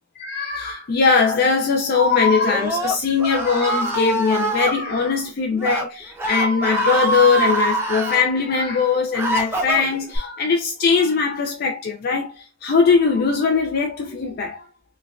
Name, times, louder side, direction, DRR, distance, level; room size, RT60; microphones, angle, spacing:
voice 1, 0.2-14.6, left 5 dB, 55° left, 0.4 m, -20 dB
Screaming, 2.3-4.7 5.5-5.8 6.2-8.2 8.8-10.2, right 2 dB, 15° right, 0.6 m, -24 dB
3.8 x 2.3 x 2.4 m
head